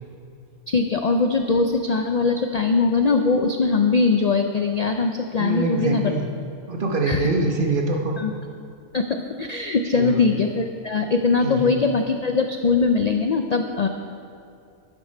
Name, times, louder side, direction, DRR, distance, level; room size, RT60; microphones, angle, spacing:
voice 1, 0.7-6.2 7.1-7.2 8.2-8.3 8.9-13.9, left 4 dB, 60° left, 5 dB, 0.4 m, -21 dB
voice 2, 5.4-6.3 6.7-8.1 9.9-10.2 11.4-11.7, right 2 dB, 45° right, 1 dB, 1.2 m, -24 dB
11.5 x 9.9 x 4.5 m, 2.4 s
omnidirectional pair, 1.3 m